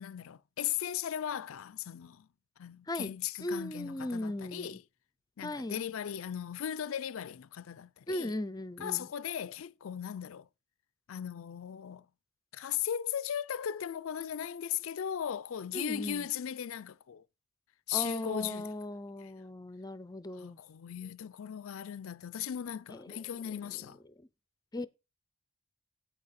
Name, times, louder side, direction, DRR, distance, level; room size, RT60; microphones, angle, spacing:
voice 1, 0.0-2.3 2.6-4.8 5.4-8.3 8.8-10.5 11.1-12.1 12.5-17.2 17.9-18.7 19.2-19.3 20.4-24.0, left 9 dB, 65° left, 0.4 m, -37 dB
voice 2, 3.4-4.8 5.4-5.8 8.1-9.1 15.7-16.3 17.9-20.6 22.9-23.2 24.2-24.3 24.7-24.9, left 1 dB, 15° left, 0.5 m, -37 dB
8.9 x 8.6 x 4.2 m
head